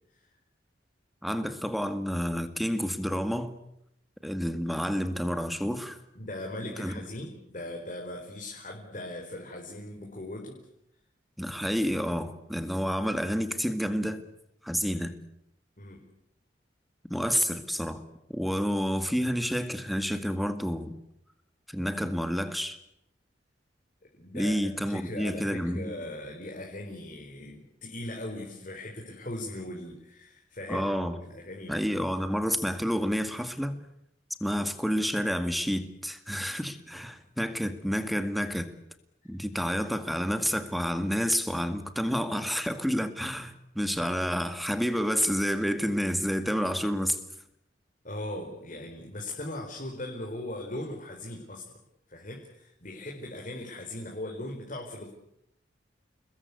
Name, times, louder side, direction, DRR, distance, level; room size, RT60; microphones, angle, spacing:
voice 1, 1.2-3.5 4.2-6.0 6.6-6.9 11.4-14.2 14.6-15.1 17.1-18.0 18.3-21.0 21.7-22.8 24.3-25.9 30.7-31.2 31.7-33.8 34.4-38.7 39.3-47.2, equal, ahead, 2.0 m, -29 dB
voice 2, 6.1-10.6 15.8-16.1 24.1-24.6 24.9-30.9 31.2-31.9 36.9-37.0 39.2-39.3 48.0-51.6 52.1-55.1, left 1 dB, 45° left, 4.5 m, -39 dB
29.5 x 21.0 x 8.3 m
head